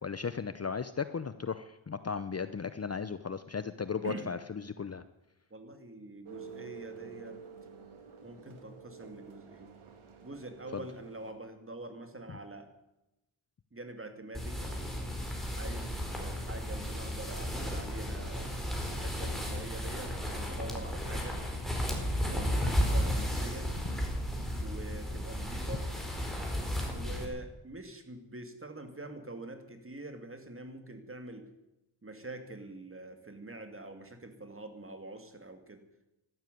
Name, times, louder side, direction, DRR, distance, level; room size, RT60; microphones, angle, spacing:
voice 1, 0.0-5.0, left 5 dB, 30° left, 12 dB, 0.8 m, -36 dB
voice 2, 5.5-7.4 8.2-9.7 10.2-12.7 13.7-15.0 15.5-18.5 18.9-21.4 22.3-23.8 24.6-25.9 26.9-31.5 32.0-35.8, right 2 dB, 25° right, 7 dB, 2.6 m, -45 dB
sound 1, 6.3-11.3, right 6 dB, 80° right, 2.5 m, -49 dB
sound 2, 14.3-27.3, equal, ahead, 4.6 m, -34 dB
12.5 x 12.0 x 9.3 m, 0.92 s
cardioid pair, 80°, 49 cm